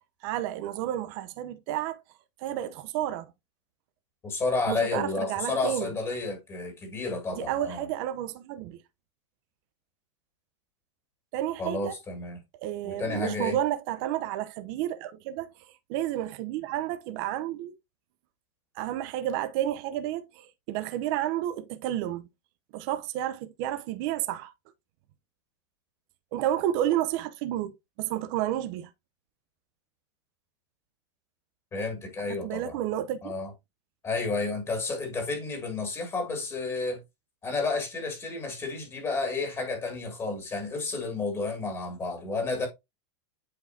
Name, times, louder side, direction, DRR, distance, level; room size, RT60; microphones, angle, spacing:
voice 1, 0.2-2.0 2.4-3.3 4.7-5.9 7.3-8.8 11.3-11.9 12.6-15.5 15.9-17.7 18.8-22.3 22.7-24.5 26.3-27.7 28.0-28.9 32.3-33.3, right 12 dB, 45° right, 0.8 m, -31 dB
voice 2, 4.2-7.8 11.6-12.4 12.8-13.6 31.7-32.8 33.2-33.5 34.0-37.0 37.4-42.7, left 3 dB, 20° left, 2.4 m, -31 dB
8.5 x 4.6 x 2.7 m
supercardioid pair, 155°, 16 cm